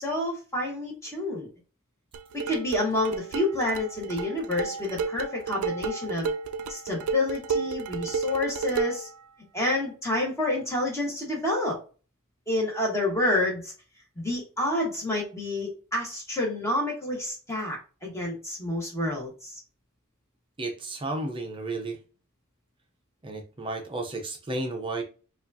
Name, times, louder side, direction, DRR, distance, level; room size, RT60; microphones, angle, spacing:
voice 1, 0.0-1.5 2.3-6.3 6.7-9.1 9.5-11.8 12.5-13.7 14.2-19.5, left 2 dB, 15° left, -2 dB, 1.2 m, -29 dB
sound 1, 2.1-9.1, right 5 dB, 85° right, 0.4 m, -32 dB
voice 2, 20.6-22.0 23.2-25.0, right 2 dB, 25° right, 4 dB, 0.6 m, -32 dB
4.8 x 2.4 x 2.7 m, 0.36 s
head